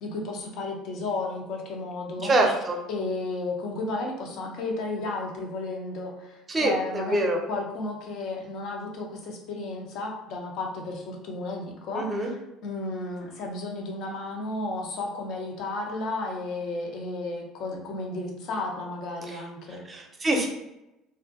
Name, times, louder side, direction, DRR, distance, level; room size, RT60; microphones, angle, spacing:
voice 1, 0.0-2.3 2.9-7.2 7.5-19.8, left 2 dB, 55° left, 1 dB, 0.6 m, -33 dB
voice 2, 2.2-2.8 6.5-7.4 11.9-12.3 19.3-19.4 19.9-20.5, right 2 dB, 30° right, 2 dB, 0.6 m, -25 dB
2.4 x 2.4 x 2.4 m, 0.89 s
figure-of-eight pair, 60°, 0 cm